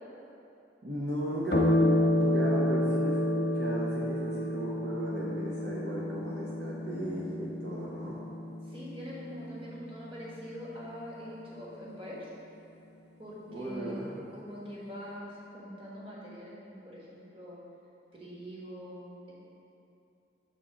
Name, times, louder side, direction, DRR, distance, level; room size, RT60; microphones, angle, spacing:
voice 1, 0.8-8.2 13.5-14.2, right 1 dB, 65° right, -5 dB, 0.8 m, -36 dB
sound 1, 1.5-10.4, left 1 dB, 60° left, 0.8 m, -30 dB
voice 2, 8.7-12.3 13.2-14.0 14.3-17.6 18.1-19.3, equal, 30° right, -7 dB, 1.4 m, -43 dB
6.6 x 3.8 x 5.7 m, 2.8 s
head